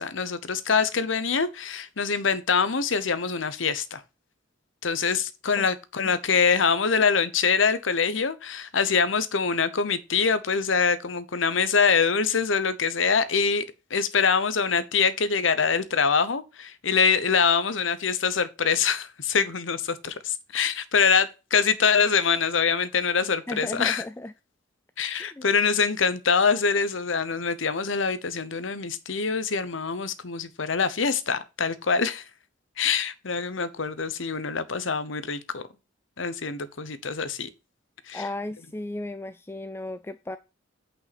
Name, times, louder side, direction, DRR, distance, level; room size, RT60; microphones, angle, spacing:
voice 1, 0.0-4.0 4.8-24.0 25.0-32.2 32.8-35.6 36.2-37.5 38.1-38.2, left 5 dB, 80° left, 0.9 m, -24 dB
voice 2, 23.5-24.3 25.2-25.4 38.1-40.4, left 2 dB, 10° left, 0.4 m, -35 dB
8.7 x 5.5 x 4.2 m
head